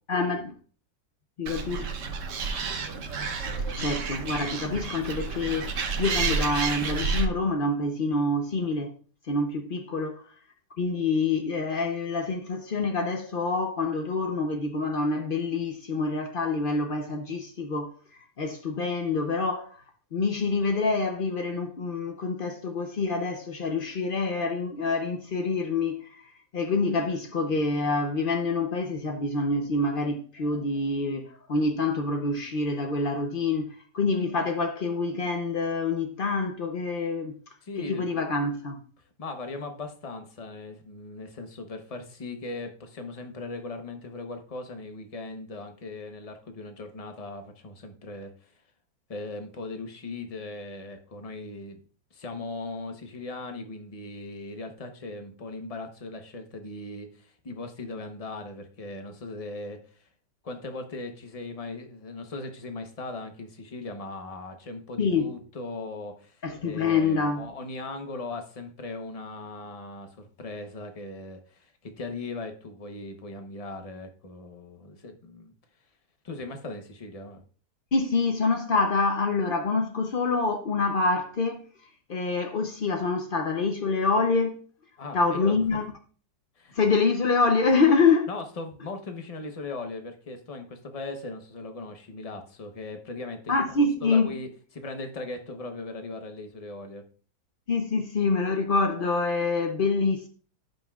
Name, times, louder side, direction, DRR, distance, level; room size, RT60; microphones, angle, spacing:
voice 1, 0.1-0.5 1.4-1.9 3.8-9.0 9.3-10.2 10.8-17.9 18.4-19.8 20.1-26.3 26.5-37.4 37.9-38.8 65.0-65.3 66.4-67.5 77.9-81.6 82.1-84.6 85.1-85.8 86.7-88.3 93.5-94.3 97.7-100.3, left 3 dB, 75° left, 0.4 m, -26 dB
Animal, 1.5-7.3, right 5 dB, 55° right, 1.0 m, -30 dB
voice 2, 37.6-38.2 39.2-48.5 49.1-51.8 52.1-60.1 60.4-75.5 76.2-77.4 85.0-85.6 86.6-86.8 88.3-97.0, left 3 dB, 35° left, 0.6 m, -39 dB
16.0 x 5.7 x 2.3 m
omnidirectional pair, 1.9 m